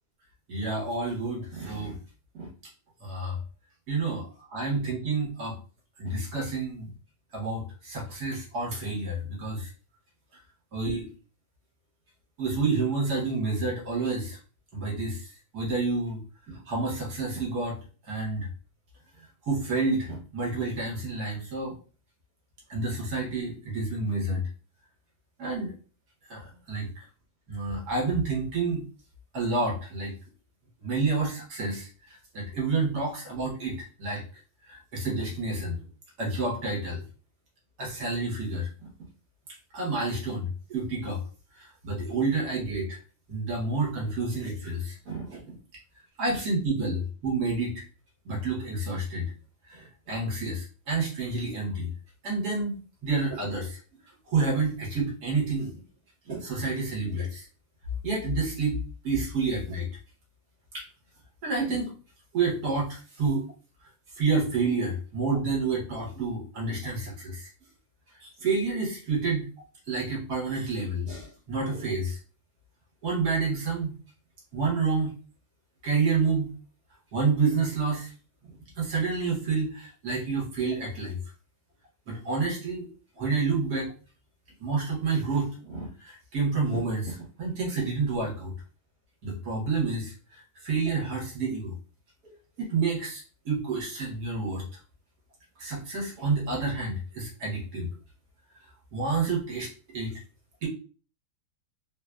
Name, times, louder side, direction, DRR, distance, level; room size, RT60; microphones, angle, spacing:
voice 1, 0.5-2.0 2.4-2.5 3.0-3.4 3.9-5.6 6.0-6.9 7.3-9.7 10.7-11.1 12.4-14.4 14.7-15.3 15.5-17.8 18.1-18.5 19.5-21.7 22.7-24.4 25.4-25.7 26.3-26.9 27.5-28.8 29.3-30.1 30.8-34.2 34.7-35.8 36.2-37.0 37.8-38.9 39.7-41.2 41.6-43.0 43.3-45.5 46.2-47.8 48.2-49.3 49.7-51.9 52.2-53.8 54.3-55.7 56.3-57.5 58.0-58.8 59.0-59.9 60.7-60.8 61.4-61.9 62.3-63.4 64.1-67.5 68.2-69.5 69.9-72.2 73.0-73.9 74.5-75.1 75.8-76.5 77.1-78.1 78.4-81.2 82.1-82.9 83.2-83.9 84.6-88.5 89.2-91.7 92.6-94.7 95.6-97.9 98.9-100.2 100.6-100.7, right 3 dB, 70° right, -3 dB, 1.7 m, -29 dB
3.7 x 2.5 x 2.2 m, 0.38 s
omnidirectional pair, 1.8 m